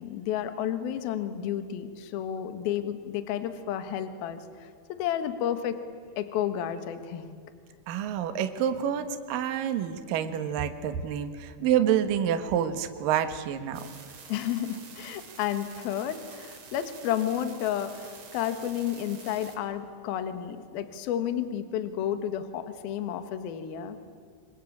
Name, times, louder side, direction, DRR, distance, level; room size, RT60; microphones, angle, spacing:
voice 1, 0.0-5.8 6.2-7.3 14.3-24.0, left 10 dB, 65° left, 9 dB, 2.9 m, -31 dB
voice 2, 7.9-13.9, right 9 dB, 65° right, 8 dB, 2.5 m, -28 dB
sound 1, 13.7-19.6, right 5 dB, 40° right, 3.0 m, -48 dB
26.5 x 24.0 x 8.8 m, 2.3 s
omnidirectional pair, 5.6 m